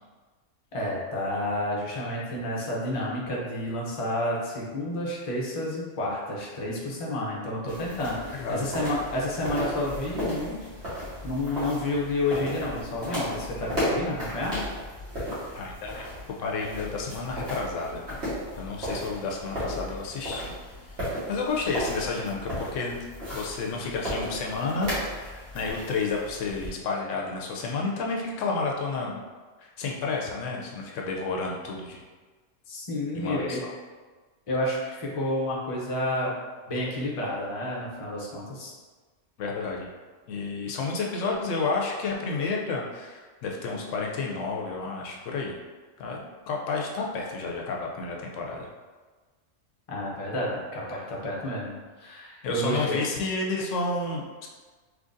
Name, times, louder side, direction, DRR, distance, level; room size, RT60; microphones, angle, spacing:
voice 1, 0.7-10.5 11.2-14.6 32.7-33.6 34.5-36.3 36.7-38.7 49.9-53.0, left 1 dB, 35° left, -4 dB, 0.6 m, -30 dB
sound 1, 7.7-26.7, equal, 60° right, 1.6 m, -35 dB
voice 2, 8.3-8.7 15.5-16.1 16.4-18.0 18.6-20.5 20.9-23.0 23.3-29.2 29.6-32.0 33.2-33.7 39.4-39.9 40.3-45.6 46.0-48.7 52.4-54.5, left 4 dB, 80° left, 0 dB, 0.9 m, -31 dB
3.8 x 3.0 x 2.5 m, 1.4 s
omnidirectional pair, 1.3 m